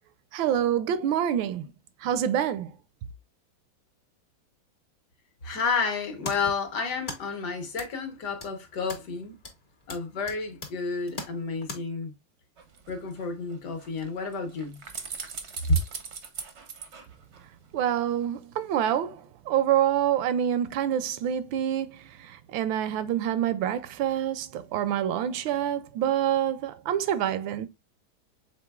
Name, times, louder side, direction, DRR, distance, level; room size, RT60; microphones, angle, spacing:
voice 1, 0.3-1.6 2.0-2.7 17.7-19.2 19.5-22.0 22.3-27.7, right 10 dB, 80° right, 1.4 m, -26 dB
voice 2, 5.4-9.4 9.9-12.1 12.9-14.8 15.7-15.8, left 3 dB, 60° left, 1.6 m, -30 dB
sound 1, 5.9-11.8, left 2 dB, 35° left, 0.9 m, -43 dB
sound 2, 12.6-17.9 18.2-18.3, right 6 dB, 60° right, 0.7 m, -42 dB
6.0 x 3.8 x 2.2 m
omnidirectional pair, 2.1 m